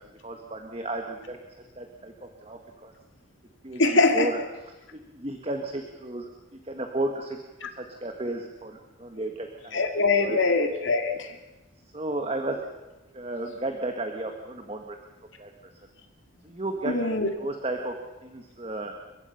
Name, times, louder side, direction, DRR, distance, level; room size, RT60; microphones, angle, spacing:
voice 1, 0.0-1.4 1.7-2.9 3.6-4.4 4.7-7.4 7.7-10.4 11.8-12.6 13.1-15.0 15.4-15.5 16.4-17.0 17.4-18.9, right 2 dB, 30° right, 4 dB, 1.6 m, -34 dB
voice 2, 3.8-4.3 7.6-7.7 9.7-11.4 16.9-17.3, left 3 dB, 70° left, 5 dB, 2.3 m, -23 dB
30.0 x 15.5 x 5.8 m, 1.1 s
head